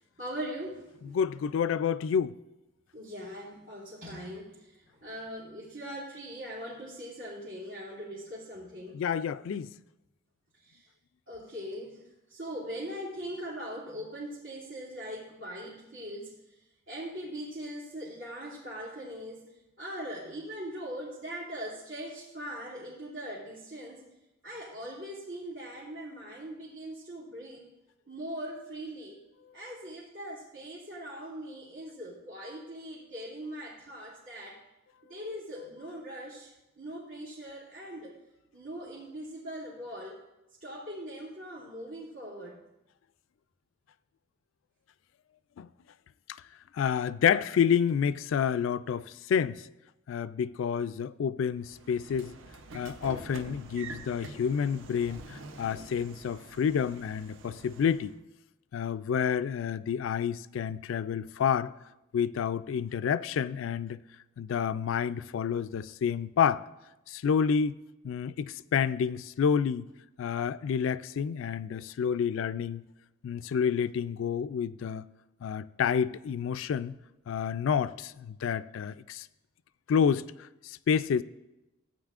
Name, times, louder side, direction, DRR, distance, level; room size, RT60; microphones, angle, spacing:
voice 1, 0.2-1.1 2.9-9.0 10.6-10.9 11.3-12.0 12.3-16.4 16.9-19.5 19.8-24.0 24.4-27.7 28.1-29.2 29.5-34.6 35.1-38.1 38.5-40.2 40.6-42.6, equal, 85° right, 2.5 m, -41 dB
voice 2, 1.0-2.4 8.9-9.7 45.6-45.7 46.7-49.6 50.1-52.3 52.7-58.1 58.7-61.7 62.1-64.0 64.4-66.6 67.1-67.8 68.0-69.9 70.2-72.8 73.2-75.0 75.4-77.0 77.3-79.3 79.9-80.2 80.6-81.2, left 7 dB, 70° left, 0.3 m, -29 dB
Train / Sliding door, 51.6-58.2, right 3 dB, 70° right, 0.7 m, -47 dB
15.0 x 8.8 x 2.4 m
head